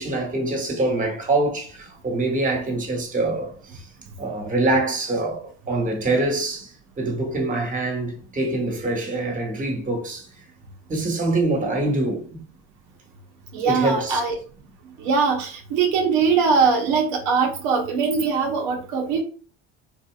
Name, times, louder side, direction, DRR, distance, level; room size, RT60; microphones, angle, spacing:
voice 1, 0.0-3.9 4.2-10.3 10.9-12.4 13.6-14.2, right 2 dB, 25° right, 1.3 m, -25 dB
voice 2, 13.5-14.3 15.0-19.2, right 5 dB, 80° right, 0.9 m, -21 dB
4.0 x 2.7 x 2.4 m
supercardioid pair, 90°, 30 cm